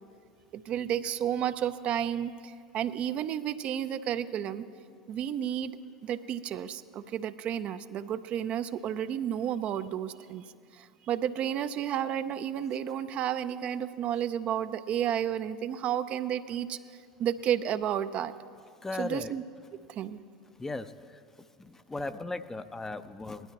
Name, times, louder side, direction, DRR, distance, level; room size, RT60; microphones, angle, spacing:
voice 1, 0.5-4.7 5.1-5.8 6.0-10.5 10.7-18.3 19.0-19.4 19.9-20.2, right 10 dB, 45° right, 11 dB, 0.5 m, -32 dB
voice 2, 18.8-19.3 20.6-21.2 21.6-23.5, left 2 dB, 15° left, 11 dB, 0.5 m, -37 dB
20.0 x 12.0 x 3.0 m, 2.2 s
figure-of-eight pair, 75°, 3 cm